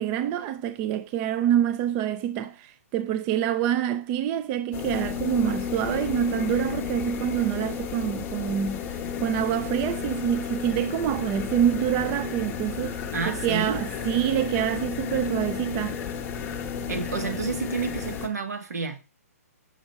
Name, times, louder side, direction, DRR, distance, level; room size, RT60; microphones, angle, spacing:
voice 1, 0.0-8.8 9.2-13.0 13.3-16.0, right 10 dB, 20° right, 0.3 m, -26 dB
sound 1, 4.7-18.3, left 7 dB, 20° left, 1.0 m, -32 dB
voice 2, 13.1-13.8 16.9-19.0, right 5 dB, 80° right, 1.9 m, -30 dB
6.0 x 4.3 x 5.5 m
hypercardioid pair, 160°, 9 cm